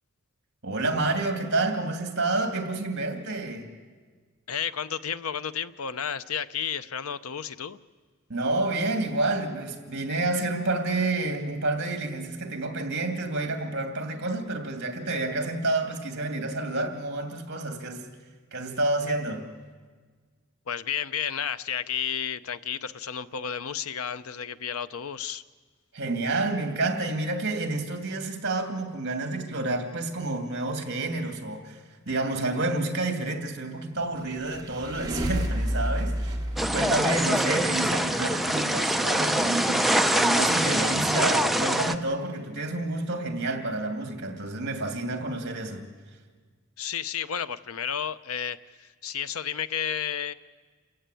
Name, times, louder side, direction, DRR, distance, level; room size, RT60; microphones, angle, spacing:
voice 1, 0.6-3.7 8.3-18.0 18.5-19.5 25.9-31.8 32.1-36.4 36.7-45.8, right 2 dB, 55° right, 2.7 m, -29 dB
voice 2, 4.5-7.8 20.7-25.4 46.8-50.3, left 8 dB, 80° left, 0.7 m, -32 dB
sound 1, 34.1-37.7, equal, 20° right, 3.1 m, -30 dB
sound 2, 36.6-41.9, right 1 dB, ahead, 0.7 m, -24 dB
28.5 x 15.5 x 9.1 m
head